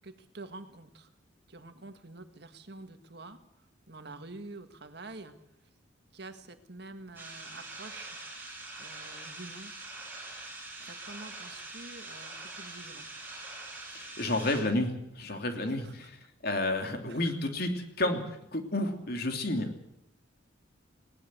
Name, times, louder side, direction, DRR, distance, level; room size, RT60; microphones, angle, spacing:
voice 1, 0.0-1.1 1.5-5.4 6.1-8.2 8.8-9.7 10.8-13.1 15.3-15.4 15.7-16.1 17.1-17.4, right 2 dB, 60° right, 8 dB, 1.9 m, -47 dB
sound 1, 7.2-14.6, right 2 dB, 10° right, 6.5 m, -44 dB
voice 2, 13.9-17.7 18.0-19.8, left 2 dB, 55° left, 5 dB, 3.1 m, -31 dB
20.0 x 18.5 x 7.8 m, 0.81 s
head